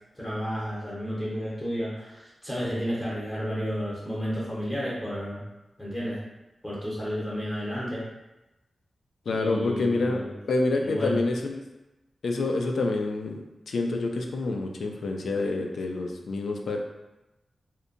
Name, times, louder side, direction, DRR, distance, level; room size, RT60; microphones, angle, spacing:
voice 1, 0.1-5.4 5.8-6.2 6.6-8.1 9.3-10.3 10.8-11.2, equal, 20° left, -7 dB, 0.7 m, -32 dB
voice 2, 9.3-10.2 10.5-11.6 12.2-13.4 13.7-16.8, left 3 dB, 85° left, 2 dB, 0.3 m, -27 dB
2.7 x 2.1 x 2.5 m, 1.0 s
wide cardioid pair, 85°, 0 cm